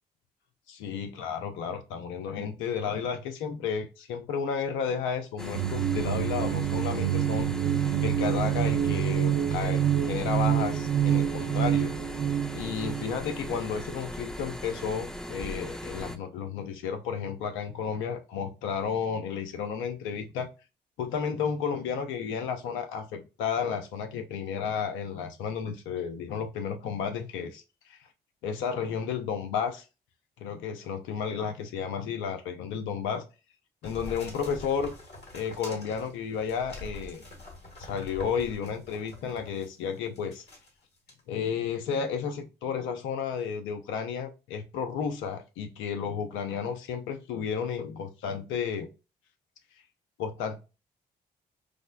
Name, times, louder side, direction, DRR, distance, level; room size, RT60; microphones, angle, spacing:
voice 1, 0.7-7.5 7.8-11.9 12.5-20.5 21.0-27.6 27.9-28.0 28.4-29.8 30.4-33.2 33.8-35.0 35.3-37.2 37.8-40.4 41.3-48.9 50.2-50.6, left 6 dB, 75° left, 0.5 m, -32 dB
sound 1, 5.4-16.2, equal, 5° left, 0.4 m, -39 dB
sound 2, 5.5-13.7, right 10 dB, 55° right, 0.4 m, -27 dB
sound 3, 33.8-39.7 40.2-40.7 41.1-41.2, left 2 dB, 55° left, 1.5 m, -45 dB
4.9 x 2.1 x 2.2 m
hypercardioid pair, 45°, 20 cm